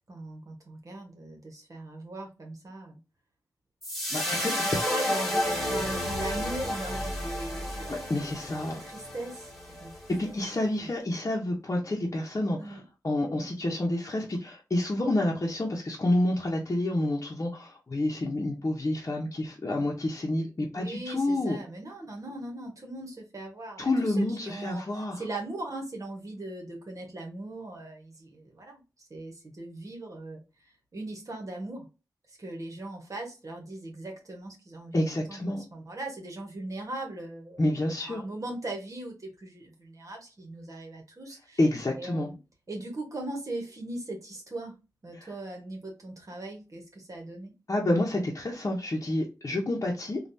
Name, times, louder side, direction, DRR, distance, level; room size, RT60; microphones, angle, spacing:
voice 1, 0.1-3.0 4.3-8.1 8.5-9.5 9.8-9.9 10.3-10.4 10.8-10.9 12.6-12.8 20.7-31.9 32.3-37.7 38.0-41.6 41.9-42.4 42.7-44.8 45.0-47.5, right 2 dB, 50° right, 1.2 m, -39 dB
sound 1, 3.8-10.2, left 1 dB, 5° left, 1.4 m, -32 dB
voice 2, 4.1-4.9 7.9-8.8 10.2-12.8 13.0-21.6 23.8-25.2 34.9-35.6 37.6-38.2 41.6-42.3 45.2-45.3 47.7-50.2, left 1 dB, 45° left, 0.8 m, -29 dB
3.2 x 2.4 x 2.7 m
cardioid pair, 50°, 7 cm